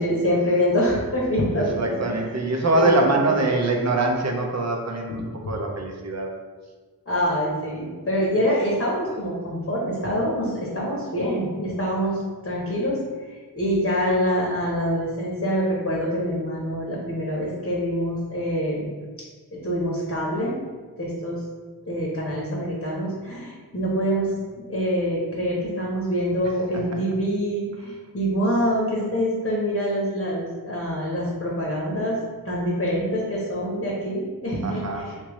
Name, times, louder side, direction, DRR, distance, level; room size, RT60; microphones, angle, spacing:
voice 1, 0.0-2.1 2.8-3.0 5.1-5.5 7.1-13.0 13.5-18.9 19.5-20.6 21.0-21.4 21.9-24.4 24.7-32.2 32.4-35.2, equal, 35° left, -4 dB, 1.0 m, -25 dB
voice 2, 1.5-6.3 34.6-35.2, right 2 dB, 45° right, 2 dB, 0.7 m, -23 dB
3.4 x 2.9 x 3.1 m, 1.4 s
cardioid pair, 45°, 39 cm